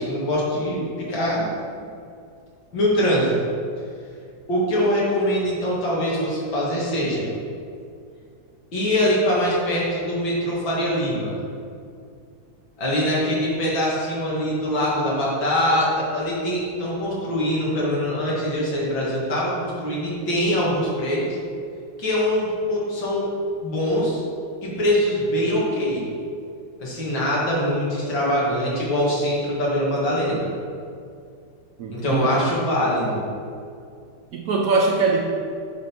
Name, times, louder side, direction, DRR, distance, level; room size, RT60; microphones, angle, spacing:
voice 1, 0.0-1.4 2.7-3.4 4.5-7.3 8.7-11.3 12.8-21.4 22.0-23.3 23.6-24.2 24.6-26.0 26.8-30.5 31.9-33.2, equal, 85° left, -6 dB, 2.6 m, -23 dB
voice 2, 31.8-32.3 34.3-35.2, right 4 dB, 70° right, 0 dB, 0.8 m, -21 dB
7.6 x 3.7 x 5.8 m, 2.4 s
omnidirectional pair, 2.0 m